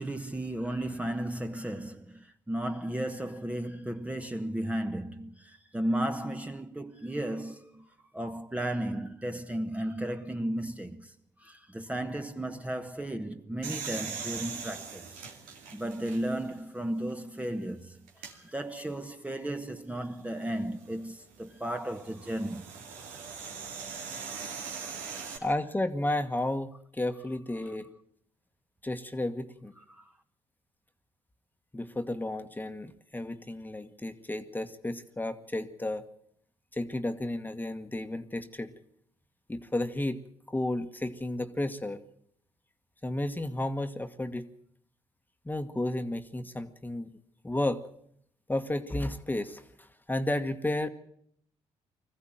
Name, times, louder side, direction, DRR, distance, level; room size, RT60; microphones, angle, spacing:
voice 1, 0.0-11.1 11.4-15.2 15.7-18.0 18.3-22.6 23.1-23.2 25.1-25.4 27.6-27.7 29.9-30.0, right 1 dB, 10° right, 1.3 m, -34 dB
sound 1, 13.6-16.5 17.1-17.2 18.1-18.3 20.5-25.4, right 6 dB, 90° right, 2.5 m, -41 dB
voice 2, 25.4-27.9 28.8-29.7 31.7-36.0 36.7-38.7 39.5-42.0 43.0-44.5 45.4-47.2 47.4-47.9 48.5-50.9, left 1 dB, 15° left, 1.5 m, -32 dB
21.0 x 14.5 x 9.0 m
supercardioid pair, 65°, 13 cm